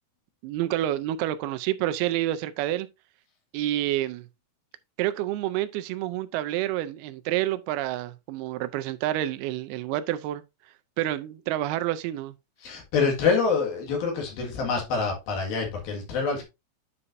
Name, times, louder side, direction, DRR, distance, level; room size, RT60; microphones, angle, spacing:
voice 1, 0.4-2.9 3.5-4.3 5.0-10.4 11.0-12.3, right 14 dB, 85° right, 2.5 m, -28 dB
voice 2, 12.6-16.4, left 5 dB, 70° left, 3.5 m, -26 dB
9.8 x 5.6 x 2.6 m
omnidirectional pair, 4.5 m